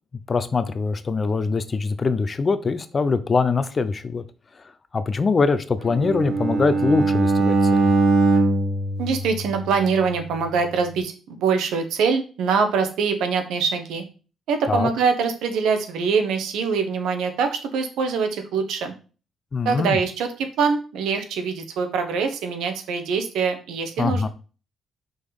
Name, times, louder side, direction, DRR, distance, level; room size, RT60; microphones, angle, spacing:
voice 1, 0.3-4.2 4.9-7.9 14.7-14.9 19.5-20.0 24.0-24.3, left 4 dB, 35° left, 13 dB, 0.7 m, -23 dB
Bowed string instrument, 5.9-10.0, right 2 dB, 65° right, 1.7 m, -21 dB
voice 2, 9.0-14.0 14.5-18.9 19.6-24.3, right 5 dB, 85° right, 6 dB, 1.2 m, -24 dB
5.3 x 4.2 x 4.9 m, 0.36 s
cardioid pair, 90°, 0 cm